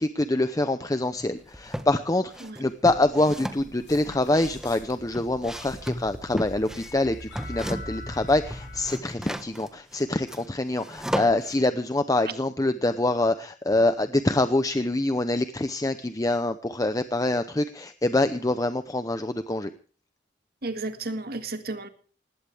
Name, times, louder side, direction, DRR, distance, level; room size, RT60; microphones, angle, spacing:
voice 1, 0.0-19.7, left 2 dB, 20° left, 0.7 m, -25 dB
sound 1, 1.2-1.9 2.3-8.1 8.4-11.6, equal, 5° right, 1.3 m, -36 dB
sound 2, 3.3-8.9, left 1 dB, 70° left, 5.9 m, -42 dB
voice 2, 20.6-21.9, right 2 dB, 55° right, 1.9 m, -33 dB
19.5 x 17.0 x 3.5 m
head